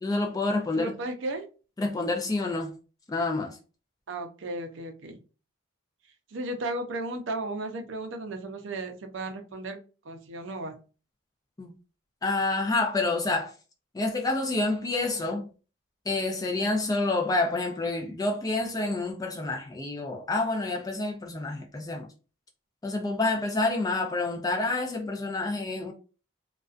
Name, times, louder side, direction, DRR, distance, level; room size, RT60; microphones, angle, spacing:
voice 1, 0.0-1.0 1.8-2.8 3.1-3.6 11.6-11.7 12.2-13.5 13.9-15.5 16.1-22.1 22.8-25.9, left 2 dB, 20° left, 0.3 m, -28 dB
voice 2, 0.8-1.5 4.1-5.2 6.3-9.8 10.0-10.8, right 2 dB, 65° right, 0.5 m, -34 dB
2.4 x 2.2 x 2.3 m
head